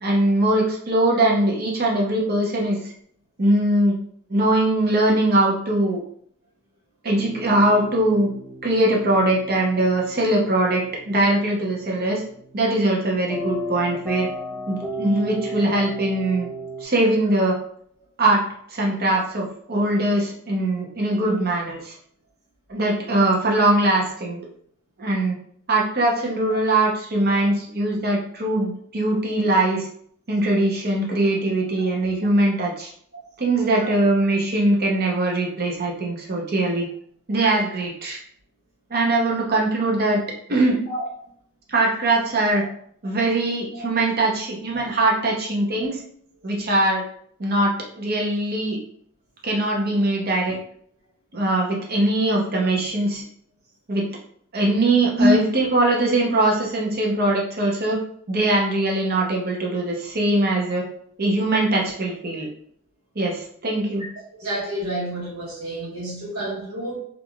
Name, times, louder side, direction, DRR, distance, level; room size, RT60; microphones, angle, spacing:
voice 1, 0.0-2.8 3.4-4.0 4.3-6.0 7.0-8.3 8.6-12.2 12.5-14.3 14.7-16.5 16.8-17.6 18.2-22.0 22.7-24.5 25.0-25.4 25.7-29.9 30.3-32.9 33.4-36.9 37.3-38.2 38.9-40.2 40.5-40.8 41.7-42.6 43.0-46.0 46.4-47.0 47.4-48.8 49.4-50.6 51.3-53.2 53.9-54.1 54.5-58.0 58.3-60.8 61.2-62.5 63.2-64.0, right 1 dB, 45° right, -1 dB, 0.7 m, -21 dB
sound 1, 7.2-16.8, equal, ahead, 0.3 m, -34 dB
voice 2, 64.3-67.0, equal, 75° right, -5 dB, 1.3 m, -25 dB
3.3 x 2.4 x 2.3 m, 0.62 s
head